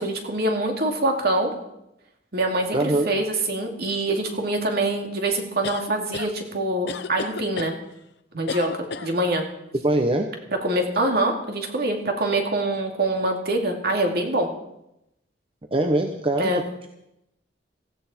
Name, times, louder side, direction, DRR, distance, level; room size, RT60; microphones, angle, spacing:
voice 1, 0.0-1.5 2.3-7.7 8.3-9.4 10.6-14.5 16.4-16.6, right 1 dB, 60° right, 2 dB, 2.6 m, -24 dB
voice 2, 2.7-3.1 9.8-10.3 15.7-16.6, right 1 dB, 30° right, 4 dB, 1.0 m, -22 dB
sound 1, 5.6-6.3 6.9-7.7 8.5-9.1, left 4 dB, 65° left, 0.8 m, -32 dB
16.5 x 15.0 x 4.4 m, 0.85 s
head